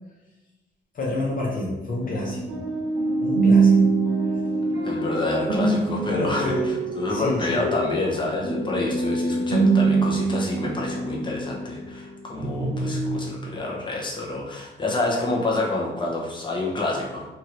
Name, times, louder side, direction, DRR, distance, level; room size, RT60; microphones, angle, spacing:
voice 1, 0.9-2.6 3.2-3.9 6.1-6.7 7.1-7.6, left 2 dB, 45° left, -4 dB, 0.7 m, -28 dB
sound 1, 2.0-12.1 12.4-13.2, right 3 dB, 65° right, 0.9 m, -24 dB
voice 2, 4.8-17.3, left 2 dB, 25° left, -3 dB, 0.8 m, -28 dB
2.8 x 2.6 x 2.9 m, 1.1 s
cardioid pair, 90°, 20 cm